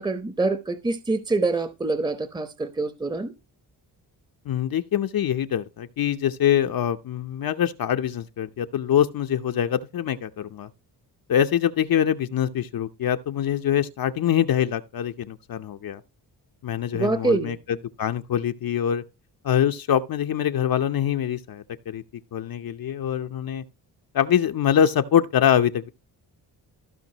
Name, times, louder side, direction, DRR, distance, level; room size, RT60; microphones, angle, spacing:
voice 1, 0.0-3.3 16.9-17.6, right 3 dB, 10° right, 0.9 m, -25 dB
voice 2, 4.5-10.7 11.3-16.0 16.6-17.6 18.0-19.0 19.4-22.0 22.3-23.6 24.1-25.9, left 10 dB, 55° left, 0.8 m, -24 dB
15.0 x 5.2 x 2.9 m
cardioid pair, 80°, 42 cm